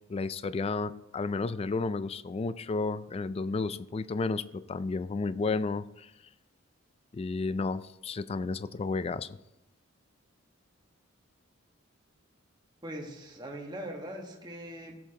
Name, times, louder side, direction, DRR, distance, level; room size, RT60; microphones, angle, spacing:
voice 1, 0.1-6.1 7.1-9.4, left 3 dB, 30° left, 0.3 m, -32 dB
voice 2, 12.8-15.0, right 1 dB, 20° right, 1.5 m, -41 dB
17.0 x 7.3 x 2.9 m
head